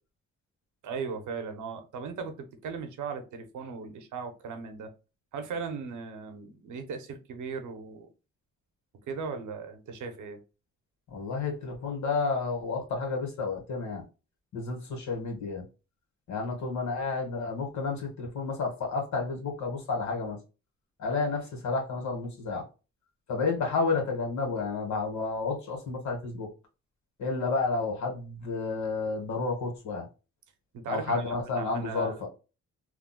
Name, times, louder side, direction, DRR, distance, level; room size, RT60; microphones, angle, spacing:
voice 1, 0.8-4.9 5.3-8.1 9.1-10.4 30.7-32.1, right 5 dB, 80° right, 0.8 m, -38 dB
voice 2, 11.1-14.0 14.5-15.6 16.3-20.4 21.0-22.6 23.3-26.5 27.2-30.1 30.9-32.3, left 4 dB, 70° left, 1.4 m, -31 dB
3.6 x 2.3 x 2.2 m
cardioid pair, 70°, 30 cm